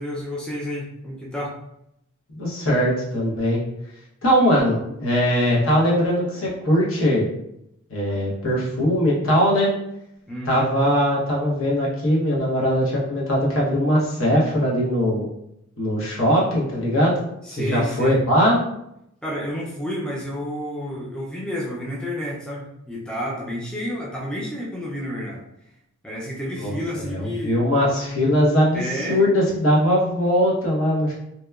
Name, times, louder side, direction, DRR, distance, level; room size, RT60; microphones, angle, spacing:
voice 1, 0.0-1.5 6.1-6.7 7.9-8.5 10.3-10.7 17.4-18.2 19.2-25.4 26.0-27.6 28.7-29.3, equal, 5° left, -4 dB, 0.4 m, -30 dB
voice 2, 2.3-3.6 4.2-7.3 7.9-9.7 10.5-15.3 15.8-17.1 17.5-18.6 26.6-26.8 27.1-28.8 29.1-31.1, equal, 70° left, -4 dB, 0.9 m, -20 dB
2.8 x 2.1 x 2.3 m, 0.80 s
head